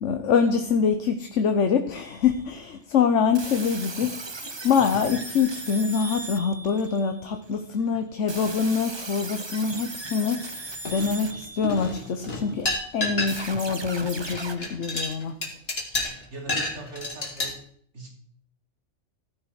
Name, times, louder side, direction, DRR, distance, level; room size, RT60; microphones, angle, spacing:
voice 1, 0.0-4.1 4.4-10.6 10.9-12.7 12.9-15.4, left 6 dB, 75° left, 6 dB, 1.3 m, -25 dB
sound 1, 1.9-2.5 3.3-7.5 8.3-12.5 13.3-14.6, right 2 dB, 25° right, 1.0 m, -38 dB
sound 2, 10.9-11.4 11.6-13.7 14.0-17.5, left 2 dB, 50° left, 2.6 m, -30 dB
voice 2, 16.3-17.6 17.9-18.1, right 2 dB, 65° right, -1 dB, 4.0 m, -40 dB
15.5 x 10.0 x 4.9 m, 0.64 s
omnidirectional pair, 1.3 m